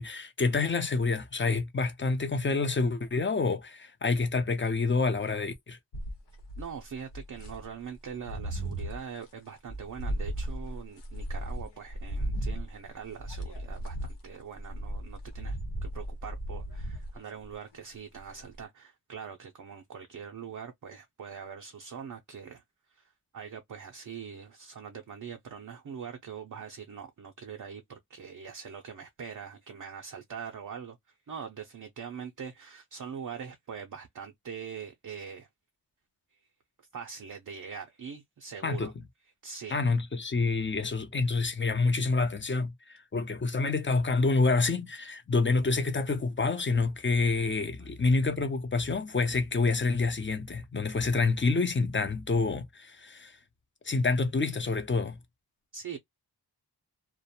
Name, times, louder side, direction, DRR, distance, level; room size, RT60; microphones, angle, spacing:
voice 1, 0.0-5.8 38.6-38.9 39.7-53.3 53.8-55.2, left 3 dB, 30° left, 0.6 m, -27 dB
sound 1, 5.9-7.7 8.1-9.0 9.7-17.8 18.2-18.6, right 1 dB, 90° left, 1.0 m, -36 dB
voice 2, 6.6-22.6 22.9-35.5 36.9-38.9 39.4-39.8 47.8-47.9 55.7-56.0, right 7 dB, 50° right, 0.5 m, -43 dB
2.4 x 2.1 x 2.7 m
wide cardioid pair, 135°, 41 cm